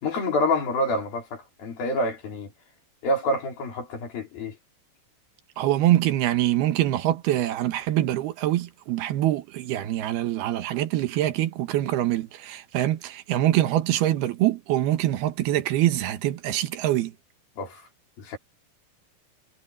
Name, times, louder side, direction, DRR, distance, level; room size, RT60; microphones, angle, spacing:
voice 1, 0.0-2.5 3.0-4.6 17.6-17.8 18.2-18.4, left 1 dB, 70° left, 5.9 m, -27 dB
voice 2, 5.6-17.1, right 13 dB, 85° right, 3.2 m, -24 dB
omnidirectional pair, 4.4 m